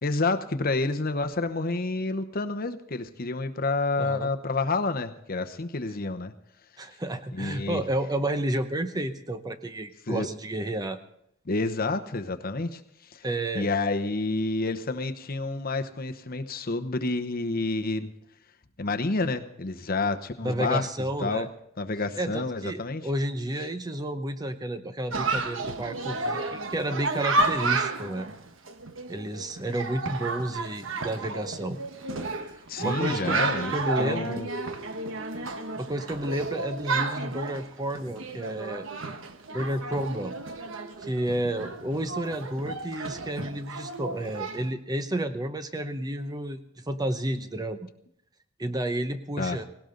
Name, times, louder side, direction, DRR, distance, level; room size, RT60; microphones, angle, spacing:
voice 1, 0.0-6.3 7.3-7.8 10.1-10.3 11.5-13.3 13.5-18.1 18.8-20.9 21.2-21.5 21.8-23.1 32.7-33.7 34.0-34.5 49.4-49.6, left 3 dB, 45° left, 8 dB, 0.9 m, -29 dB
voice 2, 4.0-4.3 6.8-11.0 13.2-13.7 20.4-21.5 22.2-28.3 29.1-31.8 32.4-34.4 35.8-38.9 39.5-40.4 41.0-47.9 48.6-49.7, right 1 dB, 20° right, 9 dB, 0.8 m, -31 dB
Chatter, 25.1-44.7, right 3 dB, 75° right, 1.2 m, -32 dB
18.0 x 17.5 x 3.9 m, 0.76 s
head